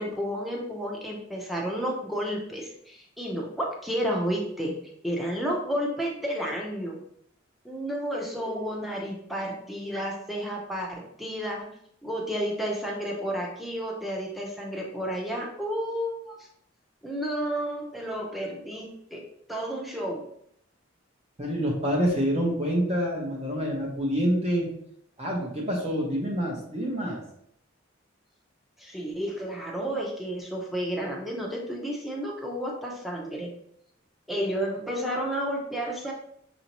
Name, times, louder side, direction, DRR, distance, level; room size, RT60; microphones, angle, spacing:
voice 1, 0.0-4.7 5.0-7.0 7.6-11.7 12.0-16.4 17.0-18.9 19.1-19.2 19.5-20.2 28.8-33.5 34.3-36.1, equal, ahead, -2 dB, 0.7 m, -31 dB
voice 2, 21.4-24.7 25.2-27.2, equal, 30° right, -2 dB, 0.9 m, -27 dB
5.4 x 2.7 x 3.0 m, 0.70 s
head